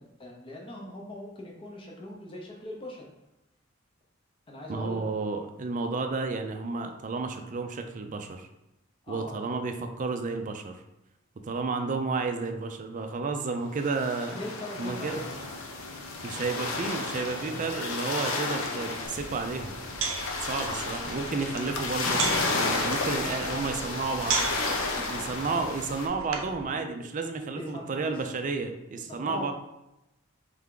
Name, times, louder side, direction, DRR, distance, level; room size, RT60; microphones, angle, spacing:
voice 1, 0.0-3.0 4.5-5.0 9.0-9.4 14.4-15.4 23.4-24.4 24.7-25.3 27.5-28.2 28.9-29.5, left 1 dB, 25° left, -1 dB, 0.6 m, -41 dB
voice 2, 4.7-8.5 9.1-10.8 11.4-14.4 14.8-15.2 16.2-19.8 20.4-22.3 22.5-24.5 25.1-29.5, right 4 dB, 35° right, 6 dB, 0.4 m, -31 dB
sound 1, 13.8-26.1, left 3 dB, 75° left, 0.7 m, -32 dB
sound 2, 19.0-26.6, right 4 dB, 75° right, 0.6 m, -36 dB
3.5 x 3.3 x 3.7 m, 0.92 s
head